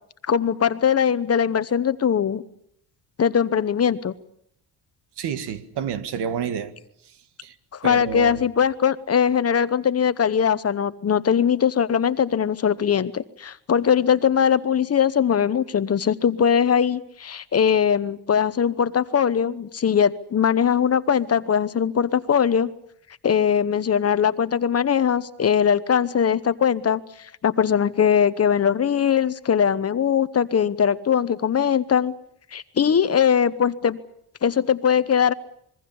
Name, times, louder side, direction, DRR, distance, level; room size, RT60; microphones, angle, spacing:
voice 1, 0.3-2.4 3.2-4.1 7.8-22.7 23.2-27.0 27.4-32.1 32.5-34.0 34.4-35.3, left 8 dB, 35° left, 1.0 m, -21 dB
voice 2, 5.2-6.7 7.0-7.6 7.8-8.4, right 8 dB, 75° right, 1.9 m, -30 dB
26.0 x 22.5 x 7.1 m
cardioid pair, 115°, 40 cm